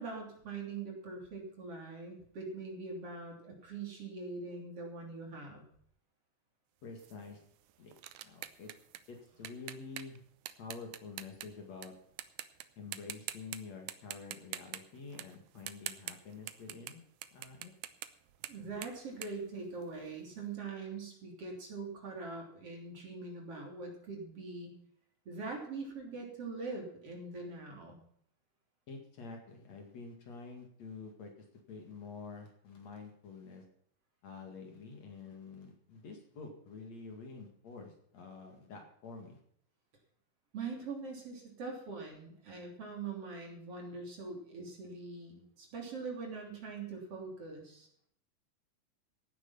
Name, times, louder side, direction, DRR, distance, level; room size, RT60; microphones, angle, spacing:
voice 1, 0.0-5.6 18.5-24.7 25.3-28.0 40.5-47.9, right 4 dB, 45° right, 1 dB, 4.0 m, -43 dB
voice 2, 6.8-7.4 7.8-7.9 8.2-8.7 9.1-10.2 10.6-12.0 12.8-17.0 17.3-17.7 28.9-31.3 31.7-33.6 34.2-39.4, left 4 dB, 55° left, 3 dB, 3.2 m, -48 dB
sound 1, 7.0-11.9 12.2-12.6 12.9-13.6 13.9-20.2, right 13 dB, 80° right, 2.3 m, -45 dB
16.0 x 9.5 x 5.7 m, 0.64 s
omnidirectional pair, 3.8 m